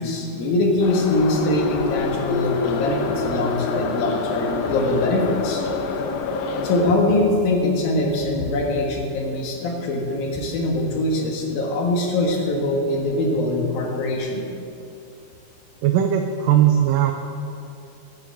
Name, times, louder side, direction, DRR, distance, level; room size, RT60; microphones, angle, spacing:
voice 1, 0.0-5.6 6.6-14.4, left 2 dB, 65° left, 0 dB, 3.2 m, -22 dB
Subway metro underground, 0.8-6.9, left 5 dB, 85° left, 2.9 m, -26 dB
voice 2, 15.8-17.1, right 10 dB, 85° right, 5 dB, 1.9 m, -18 dB
14.0 x 7.9 x 7.6 m, 2.7 s
omnidirectional pair, 4.7 m